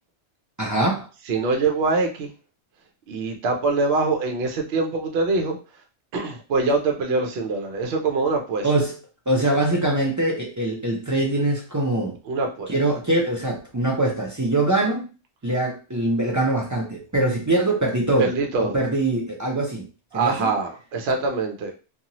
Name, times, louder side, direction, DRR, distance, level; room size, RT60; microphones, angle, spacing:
voice 1, 0.6-1.1 8.6-9.0 9.3-12.2 12.7-15.1 15.4-18.3 18.6-19.9 20.1-20.5, right 2 dB, 30° right, -2 dB, 0.3 m, -23 dB
voice 2, 1.3-2.3 3.1-5.6 6.1-8.7 12.3-12.7 18.2-18.8 20.1-21.7, right 3 dB, 65° right, 4 dB, 0.8 m, -24 dB
2.6 x 2.3 x 2.9 m, 0.32 s
omnidirectional pair, 1.2 m